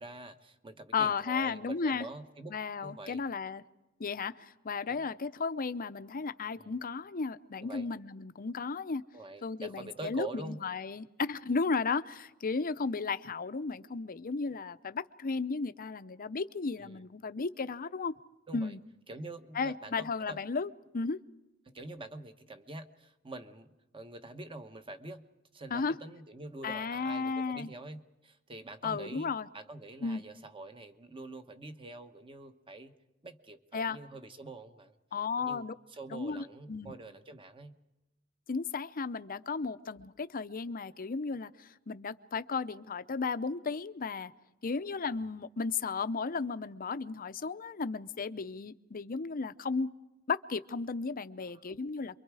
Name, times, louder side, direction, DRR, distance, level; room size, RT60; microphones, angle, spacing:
voice 1, 0.0-2.6 2.8-3.2 4.8-5.1 6.6-6.7 7.6-7.9 9.1-10.6 16.8-17.0 18.5-18.7 19.1-20.4 21.6-25.2 25.5-32.9 33.2-34.9 35.4-37.7 51.4-51.7, right 2 dB, 25° right, 8 dB, 1.2 m, -46 dB
voice 2, 0.9-2.1 2.5-3.6 4.0-9.0 9.4-18.1 18.5-18.8 19.5-21.2 25.7-26.0 26.6-27.7 28.8-29.5 30.0-30.2 33.7-34.0 35.1-35.7 36.1-36.9 38.5-44.3 44.6-49.9 50.3-52.2, left 4 dB, 45° left, 12 dB, 0.7 m, -34 dB
28.0 x 23.5 x 4.8 m, 1.0 s
head